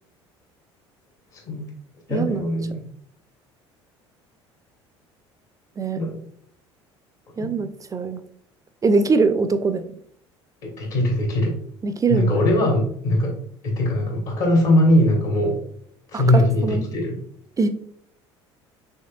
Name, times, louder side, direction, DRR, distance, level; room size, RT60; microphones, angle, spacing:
voice 1, 1.3-1.7 2.1-2.8 5.9-6.2 7.4-7.5 10.6-11.6 12.1-13.4 13.6-15.6 16.1-17.2, left 1 dB, 60° left, 0 dB, 1.3 m, -21 dB
voice 2, 2.1-2.4 5.8-6.0 7.4-8.2 8.8-9.9 11.8-12.4 16.1-16.8 17.6-17.7, right 4 dB, 25° right, 10 dB, 0.4 m, -22 dB
5.4 x 3.2 x 2.3 m, 0.64 s
figure-of-eight pair, 60°, 15 cm